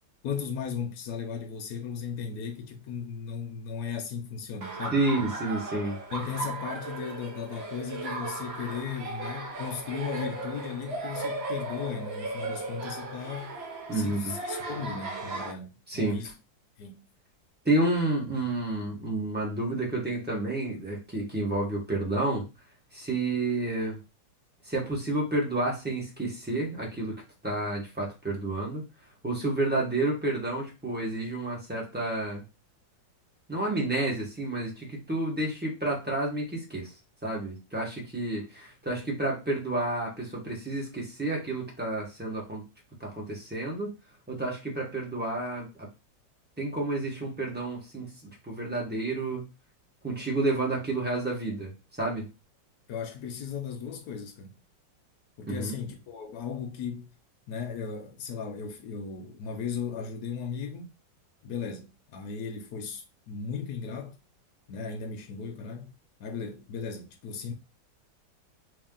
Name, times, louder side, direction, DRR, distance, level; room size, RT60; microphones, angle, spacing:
voice 1, 0.2-5.0 6.1-13.6 13.9-16.3 16.8-17.0 52.9-54.6 55.4-57.1 57.5-60.9 61.4-64.2 64.7-65.9 66.2-67.5, left 6 dB, 65° left, 1.0 m, -36 dB
Laughter, 4.6-15.5, right 2 dB, 55° right, 0.7 m, -36 dB
voice 2, 4.9-6.0 13.9-14.3 15.9-16.2 17.6-22.4 22.9-24.0 24.7-27.1 27.4-28.8 29.2-32.4 33.5-36.9 37.2-42.6 43.0-43.9 44.3-45.9 46.6-48.1 48.5-49.5 50.0-51.7 52.0-52.3 55.5-55.7, right 2 dB, 10° right, 0.8 m, -30 dB
3.1 x 2.8 x 3.6 m
omnidirectional pair, 2.0 m